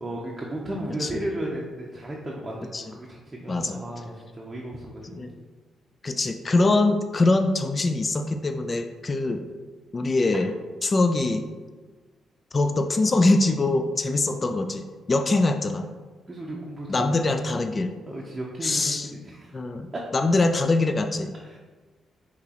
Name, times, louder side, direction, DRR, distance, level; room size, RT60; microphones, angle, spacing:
voice 1, 0.0-5.3 14.3-14.4 16.3-17.1 18.1-19.6 19.9-20.0 21.4-21.6, right 1 dB, 20° right, -3 dB, 0.6 m, -34 dB
voice 2, 3.5-3.8 5.2-5.3 6.0-9.4 9.9-10.5 10.8-11.4 12.5-15.9 16.9-17.9 18.6-19.1 19.5-21.3, left 2 dB, 35° left, 7 dB, 0.3 m, -23 dB
5.9 x 2.8 x 2.9 m, 1.3 s
cardioid pair, 85°, 0 cm